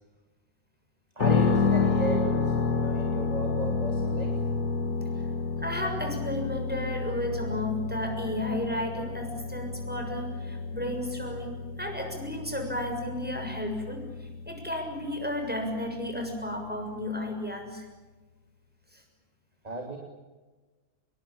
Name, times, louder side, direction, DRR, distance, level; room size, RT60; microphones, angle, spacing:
voice 1, 1.1-4.4 8.5-8.6 19.6-20.0, right 1 dB, 25° right, 2 dB, 3.2 m, -34 dB
sound 1, 1.2-17.0, left 4 dB, 80° left, 2.0 m, -30 dB
voice 2, 5.6-11.5 11.8-17.8 18.9-19.0, left 1 dB, 5° right, 3 dB, 6.8 m, -33 dB
27.0 x 22.0 x 8.9 m, 1.3 s
omnidirectional pair, 1.6 m